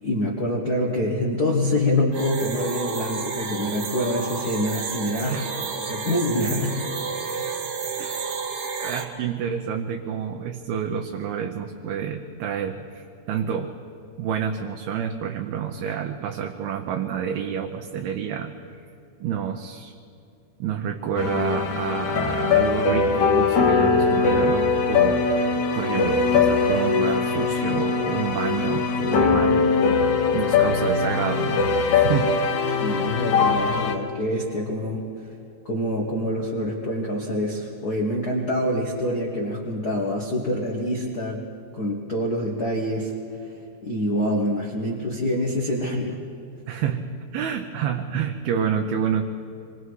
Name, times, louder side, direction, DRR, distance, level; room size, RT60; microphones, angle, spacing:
voice 1, 0.0-5.4 5.7-6.8 7.2-7.5 32.8-35.0 35.6-41.4 41.7-43.1 43.8-46.2, left 1 dB, 90° left, -2 dB, 0.8 m, -26 dB
sound 1, 2.1-9.0, right 5 dB, 55° right, 2.1 m, -31 dB
voice 2, 8.0-8.3 8.8-13.7 14.2-18.6 19.2-19.9 20.6-25.2 25.7-29.7 30.1-32.4 46.7-47.0 47.3-49.2, right 8 dB, 75° right, 4 dB, 2.6 m, -28 dB
sound 2, 21.2-34.0, left 5 dB, 60° left, 2.1 m, -21 dB
26.0 x 22.5 x 4.8 m, 2.7 s
omnidirectional pair, 4.7 m